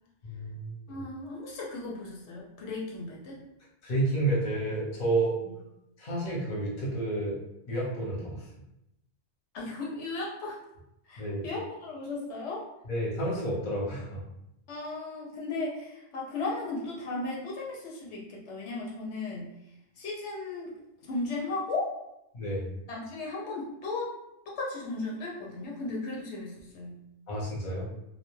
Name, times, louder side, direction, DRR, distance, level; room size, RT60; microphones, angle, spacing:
voice 1, 0.2-1.0 3.8-5.4 6.0-7.4 7.7-8.5 11.2-11.5 12.9-14.2 22.3-22.6 27.3-27.8, right 1 dB, 45° left, -4 dB, 0.9 m, -30 dB
voice 2, 0.9-3.4 9.5-10.6 11.1-12.7 14.7-19.5 20.0-20.7 21.0-21.9 22.9-24.1 24.5-27.0, left 3 dB, 80° left, -3 dB, 0.9 m, -36 dB
2.2 x 2.2 x 3.0 m, 0.84 s
omnidirectional pair, 1.2 m